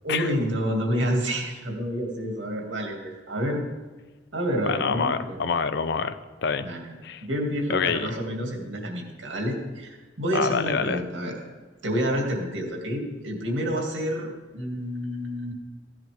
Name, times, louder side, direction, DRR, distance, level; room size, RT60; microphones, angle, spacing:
voice 1, 0.0-3.6 4.3-5.4 6.6-6.9 7.2-11.4 11.8-15.5, equal, 85° right, 1 dB, 2.3 m, -29 dB
voice 2, 4.6-6.7 7.0-7.2 7.7-8.1 10.3-11.0, left 5 dB, 65° left, 12 dB, 0.6 m, -26 dB
15.5 x 10.5 x 3.5 m, 1.3 s
head